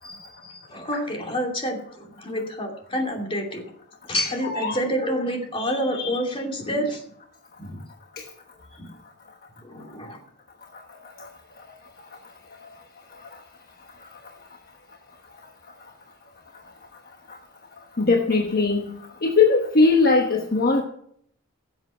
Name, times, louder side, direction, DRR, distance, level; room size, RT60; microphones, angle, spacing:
voice 1, 0.0-3.6 4.0-7.0 7.6-7.8 8.8-8.9 9.6-10.2, equal, 25° left, 1 dB, 2.8 m, -28 dB
voice 2, 4.4-4.8 8.2-8.3 11.2-11.3 18.0-19.0 19.2-20.8, left 3 dB, 45° left, 2 dB, 1.2 m, -20 dB
16.0 x 7.8 x 5.6 m, 0.68 s
head